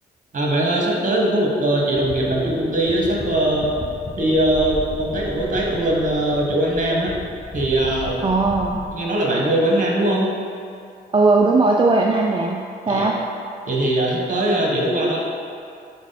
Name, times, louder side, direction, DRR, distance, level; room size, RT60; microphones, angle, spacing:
voice 1, 0.3-3.7 4.2-7.1 7.5-8.2 8.9-10.3 12.9-13.1 13.7-15.2, right 1 dB, 45° right, -2 dB, 1.5 m, -20 dB
sound 1, 2.0-8.9, left 1 dB, 20° left, 0.8 m, -35 dB
voice 2, 8.2-8.8 11.1-13.2, right 3 dB, 30° right, -1 dB, 0.5 m, -18 dB
6.1 x 4.2 x 4.1 m, 2.4 s
cardioid pair, 70°, 18 cm